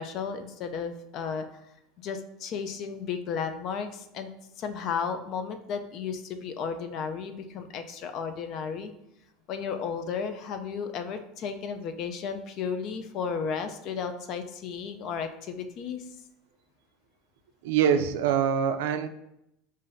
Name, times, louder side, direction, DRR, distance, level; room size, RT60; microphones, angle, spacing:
voice 1, 0.0-1.5 2.0-4.3 4.6-8.9 9.5-16.1, left 6 dB, 40° left, 8 dB, 0.3 m, -34 dB
voice 2, 17.6-19.1, right 8 dB, 80° right, 8 dB, 0.3 m, -24 dB
5.7 x 2.5 x 2.6 m, 0.82 s
cardioid pair, 170°, 0 cm